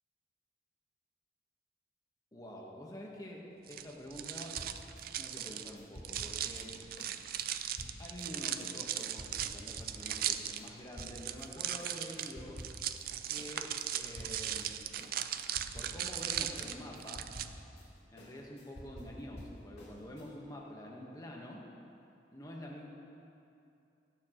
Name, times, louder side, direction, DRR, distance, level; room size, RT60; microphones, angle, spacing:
voice 1, 2.3-3.4 3.7-4.6 5.2-6.8 8.0-12.6 13.2-14.9 15.7-17.3 18.1-21.7 22.3-22.8, left 1 dB, 20° left, -2 dB, 1.2 m, -47 dB
sound 1, 3.7-17.5, right 10 dB, 55° right, 0.4 m, -38 dB
sound 2, 4.6-11.5 11.8-13.1 13.4-20.3, equal, 60° left, 2.4 m, -50 dB
18.5 x 7.0 x 3.0 m, 2.7 s
head